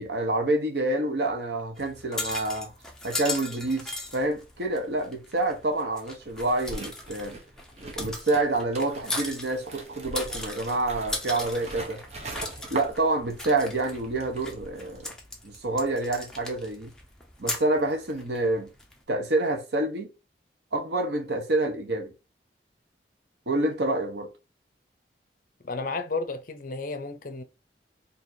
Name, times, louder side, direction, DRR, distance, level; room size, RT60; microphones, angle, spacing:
voice 1, 0.0-2.7 3.0-7.3 8.0-12.0 12.7-15.1 15.4-16.9 17.4-18.7 19.1-20.1 20.7-22.1 23.5-24.3, right 2 dB, 75° right, 1.0 m, -27 dB
sound 1, 1.8-19.0, left 2 dB, 5° left, 0.7 m, -38 dB
sound 2, 6.3-13.6 13.8-15.1, right 2 dB, 40° right, 0.9 m, -41 dB
voice 2, 25.6-27.4, left 3 dB, 50° left, 0.6 m, -32 dB
4.7 x 2.7 x 2.7 m
head